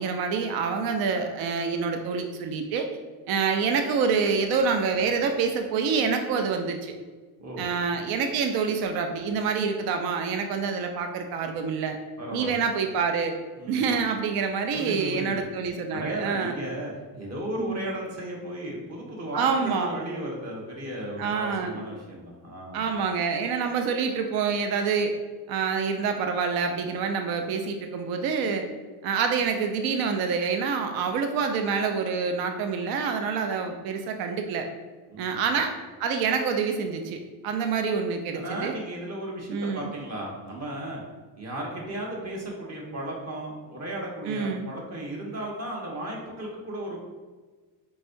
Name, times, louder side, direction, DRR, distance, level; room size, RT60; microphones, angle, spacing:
voice 1, 0.0-2.9 3.3-6.9 7.6-12.0 12.3-13.4 13.7-16.6 17.6-17.8 19.3-19.9 21.2-21.8 22.7-25.1 25.5-28.7 29.0-34.7 35.2-35.7 36.0-38.8 39.5-39.9 44.3-44.7, right 5 dB, 50° right, 5 dB, 0.5 m, -27 dB
voice 2, 12.2-12.7 13.6-14.0 14.7-15.4 15.9-22.9 35.1-35.6 38.3-41.0 41.4-47.0, right 1 dB, 30° right, -2 dB, 1.3 m, -35 dB
4.5 x 3.2 x 2.6 m, 1.3 s
supercardioid pair, 100°, 50 cm